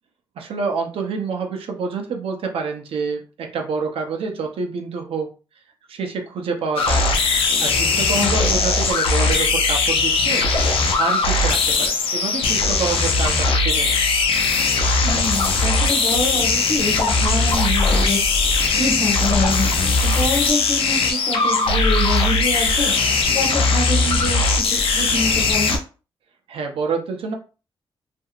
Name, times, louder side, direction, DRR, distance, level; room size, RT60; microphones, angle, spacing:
voice 1, 0.4-5.3 5.9-7.2 7.6-10.4 10.9-13.9 26.5-27.3, right 5 dB, 75° right, 3 dB, 0.7 m, -27 dB
sound 1, 6.8-25.8, left 3 dB, 75° left, 0.6 m, -19 dB
voice 2, 8.1-8.6 15.0-18.2 18.7-22.9 23.3-25.8, left 2 dB, 45° left, -1 dB, 1.2 m, -26 dB
2.7 x 2.6 x 2.4 m, 0.34 s
wide cardioid pair, 145°, 10 cm